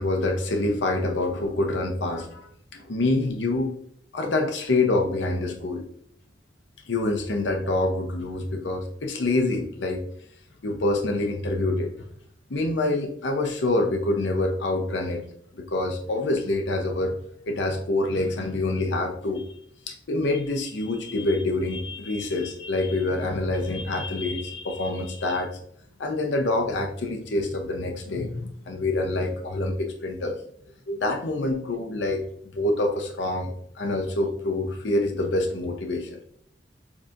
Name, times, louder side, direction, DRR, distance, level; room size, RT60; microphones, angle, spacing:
voice 1, 0.0-2.5 2.7-3.7 4.1-5.8 6.9-10.0 10.6-11.9 12.5-15.2 15.5-17.2 17.5-19.4 19.9-25.5 26.0-30.3 30.9-32.2 32.5-36.2, left 2 dB, 80° left, 4 dB, 0.7 m, -26 dB
7.1 x 2.8 x 2.5 m, 0.65 s
head